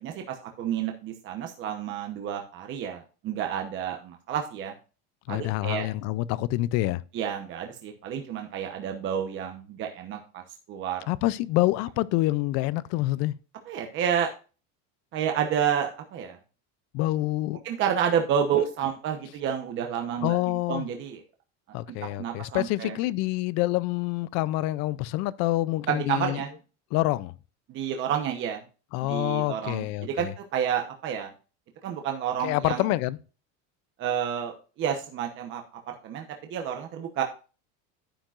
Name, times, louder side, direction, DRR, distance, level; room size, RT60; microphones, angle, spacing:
voice 1, 0.0-4.7 5.3-5.9 7.1-10.4 10.7-11.1 13.7-14.3 15.1-16.4 17.6-20.4 20.7-21.2 22.2-23.0 25.9-26.5 27.7-28.6 29.0-31.3 31.8-32.9 34.0-36.2 36.5-37.2, right 8 dB, 35° right, 0.9 m, -30 dB
voice 2, 5.3-7.0 11.1-13.4 16.9-17.6 20.2-20.9 21.7-26.4 26.9-27.3 28.9-30.3 32.4-33.2, left 17 dB, 45° left, 0.4 m, -27 dB
10.0 x 8.8 x 2.5 m
cardioid pair, 170°, 36 cm